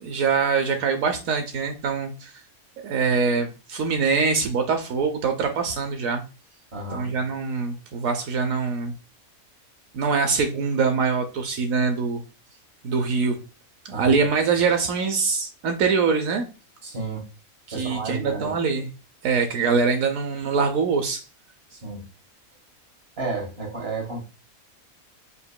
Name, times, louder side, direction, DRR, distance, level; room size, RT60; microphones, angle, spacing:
voice 1, 0.0-2.3 2.8-6.2 6.9-9.0 9.9-12.2 12.8-13.4 13.9-16.5 17.7-18.9 19.2-21.2, right 5 dB, 75° right, 5 dB, 1.0 m, -23 dB
voice 2, 6.7-7.1 13.9-14.2 16.8-17.3 17.7-18.5 21.7-22.0 23.2-24.2, right 3 dB, 45° right, 0 dB, 1.7 m, -32 dB
6.7 x 2.8 x 2.2 m, 0.32 s
omnidirectional pair, 1.5 m